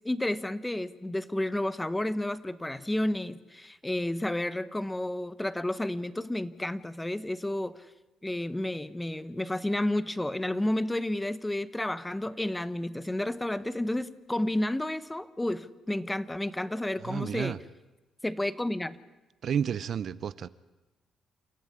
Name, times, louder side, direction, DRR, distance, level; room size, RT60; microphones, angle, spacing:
voice 1, 0.0-7.8 8.2-17.6 18.2-19.0, left 1 dB, 10° left, 1.0 m, -31 dB
voice 2, 17.0-17.6 19.4-20.5, right 8 dB, 60° right, 0.7 m, -31 dB
28.5 x 13.5 x 9.7 m
cardioid pair, 90°, 0 cm